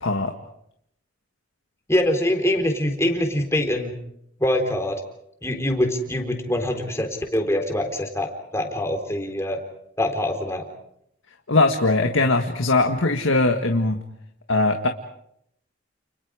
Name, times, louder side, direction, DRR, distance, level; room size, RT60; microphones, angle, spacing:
voice 1, 0.0-0.3 11.5-14.0 14.5-14.9, left 2 dB, 85° left, 5 dB, 1.8 m, -20 dB
voice 2, 1.9-3.9 4.4-5.0 5.4-9.6 10.0-10.7, left 1 dB, 15° left, 4 dB, 3.9 m, -24 dB
30.0 x 30.0 x 5.0 m, 0.75 s
head